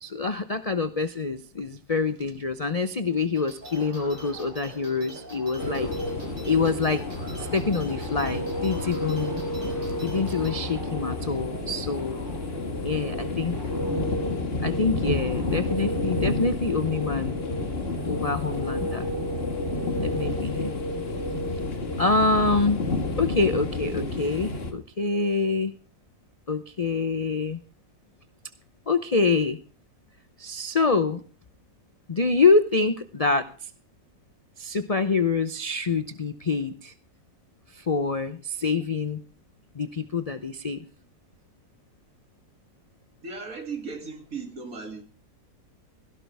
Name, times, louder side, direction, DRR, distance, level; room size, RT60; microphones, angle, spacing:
voice 1, 0.0-5.9 6.5-7.0 7.4-9.4 10.0-12.2 12.8-13.6 14.6-17.4 18.0-19.1 20.0-20.8 22.0-22.8 23.2-25.7 26.5-27.6 28.9-29.6 30.4-31.2 32.1-33.7 34.6-36.9 37.7-39.2 39.7-40.8, left 4 dB, 55° left, 11 dB, 0.4 m, -26 dB
sound 1, 3.4-10.5, right 1 dB, 75° right, 4.2 m, -47 dB
sound 2, 3.6-22.0, right 2 dB, 30° right, 4.3 m, -45 dB
sound 3, 5.6-24.7, left 2 dB, 35° left, 1.9 m, -30 dB
voice 2, 43.2-45.0, right 4 dB, 55° right, 4 dB, 2.9 m, -36 dB
17.0 x 16.5 x 3.4 m, 0.37 s
omnidirectional pair, 1.8 m